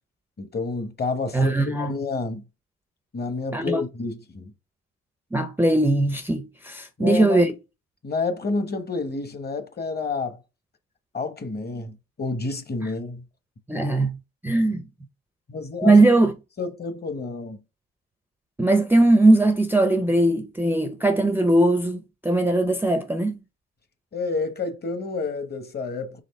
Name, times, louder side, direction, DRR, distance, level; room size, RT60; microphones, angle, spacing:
voice 1, 0.4-2.5 3.1-4.5 7.0-7.4 8.0-10.4 11.1-13.2 15.5-15.9 16.6-17.6 24.1-26.2, left 3 dB, 35° left, 1.0 m, -29 dB
voice 2, 1.3-1.9 3.5-3.8 5.3-7.5 13.7-14.2 14.4-14.8 15.8-16.3 18.6-23.4, right 2 dB, 5° right, 0.5 m, -20 dB
4.1 x 3.0 x 4.2 m
cardioid pair, 90°, 30 cm